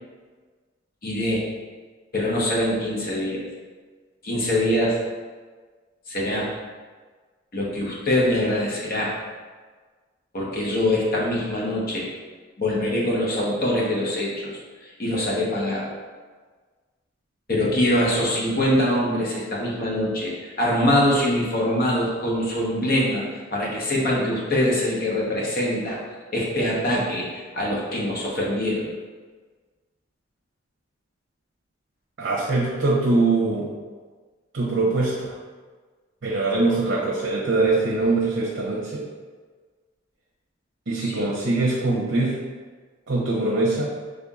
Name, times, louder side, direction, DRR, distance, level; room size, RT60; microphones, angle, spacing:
voice 1, 1.0-1.5 2.1-3.4 4.2-5.0 6.1-6.5 7.5-9.1 10.3-12.1 12.6-14.5 15.0-15.9 17.5-23.2 23.5-26.0 26.3-28.9 41.0-41.3, left 1 dB, 50° left, -4 dB, 1.0 m, -23 dB
voice 2, 32.2-33.7 34.5-35.3 36.2-39.0 40.9-42.4 43.1-43.9, right 3 dB, 70° right, -4 dB, 0.7 m, -22 dB
5.4 x 3.4 x 2.4 m, 1.4 s
head